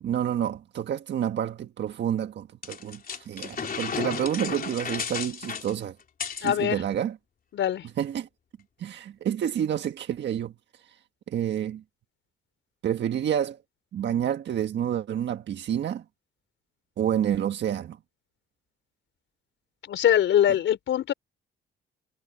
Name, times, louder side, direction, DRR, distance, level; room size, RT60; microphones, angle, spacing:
voice 1, 0.0-5.9 6.4-7.2 8.0-8.3 8.8-10.5 11.3-11.8 12.8-13.6 13.9-16.0 17.0-18.0, right 10 dB, 65° right, 1.5 m, -29 dB
sound 1, 2.6-6.5, left 6 dB, 45° left, 3.4 m, -33 dB
voice 2, 6.4-6.8 7.5-7.8 19.9-21.1, left 10 dB, 70° left, 5.4 m, -22 dB
cardioid pair, 90°, 20 cm